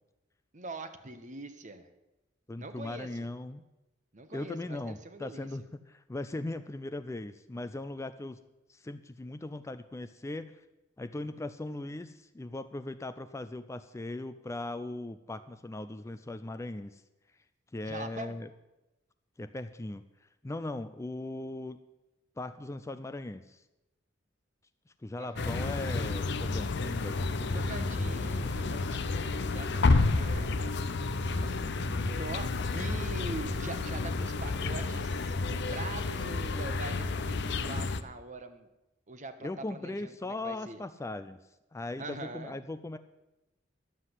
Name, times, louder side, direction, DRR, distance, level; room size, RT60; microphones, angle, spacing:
voice 1, 0.5-1.9 2.6-3.2 4.1-5.5 17.8-18.4 25.2-25.7 27.5-30.7 31.2-38.7 39.1-40.8 42.0-42.6, right 2 dB, 40° right, 9 dB, 1.1 m, -43 dB
voice 2, 2.5-3.6 4.3-5.6 5.9-8.4 8.7-10.6 11.0-17.0 17.7-18.5 19.4-20.0 20.4-21.8 22.4-23.6 25.0-28.9 39.4-41.4 41.7-43.0, left 2 dB, 15° left, 11 dB, 0.4 m, -39 dB
sound 1, 25.4-38.0, left 3 dB, 60° left, 0.7 m, -30 dB
11.5 x 7.5 x 8.0 m, 0.97 s
head